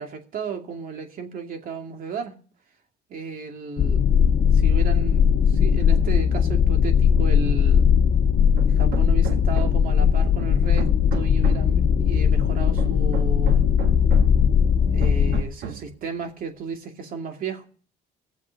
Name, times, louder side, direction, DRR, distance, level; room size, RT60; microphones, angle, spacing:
voice 1, 0.0-2.3 3.1-4.0 4.5-7.8 8.7-13.6 14.9-17.7, right 5 dB, 55° right, 4 dB, 2.5 m, -34 dB
sound 1, 3.8-15.4, left 7 dB, 50° left, 1.5 m, -19 dB
Hammer, 8.6-10.0 10.4-11.8 12.4-14.5 15.0-16.0, right 8 dB, 75° right, 1.7 m, -35 dB
18.0 x 7.3 x 5.3 m, 0.41 s
cardioid pair, 110°, 17 cm